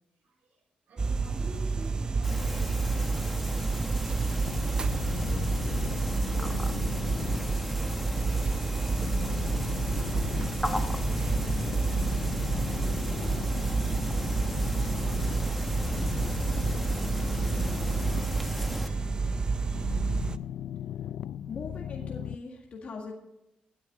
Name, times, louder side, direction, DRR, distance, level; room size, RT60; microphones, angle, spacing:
voice 1, 0.1-7.3 8.2-10.5 10.7-19.9, right 2 dB, 85° right, -1 dB, 4.9 m, -50 dB
sound 1, 1.0-20.4, right 4 dB, 30° right, 0.5 m, -29 dB
sound 2, 2.2-18.9, equal, ahead, 1.3 m, -36 dB
sound 3, 4.5-22.4, left 10 dB, 90° left, 0.4 m, -38 dB
voice 2, 21.5-23.1, left 4 dB, 50° left, 0 dB, 1.7 m, -40 dB
17.0 x 10.0 x 3.7 m, 0.93 s
cardioid pair, 125°, 3 cm